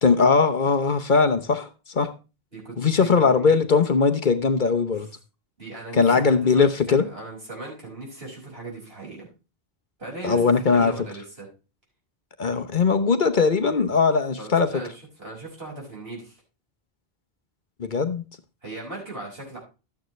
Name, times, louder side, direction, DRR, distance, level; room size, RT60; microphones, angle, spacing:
voice 1, 0.0-2.1 2.8-5.1 6.0-7.0 10.2-10.9 12.4-14.7 17.8-18.2, left 5 dB, 50° left, 9 dB, 1.0 m, -20 dB
voice 2, 2.5-3.5 5.0-5.1 5.6-9.3 10.0-11.5 14.4-16.4 18.6-19.6, right 2 dB, 70° right, -3 dB, 6.0 m, -38 dB
12.5 x 9.2 x 3.2 m, 0.31 s
omnidirectional pair, 1.0 m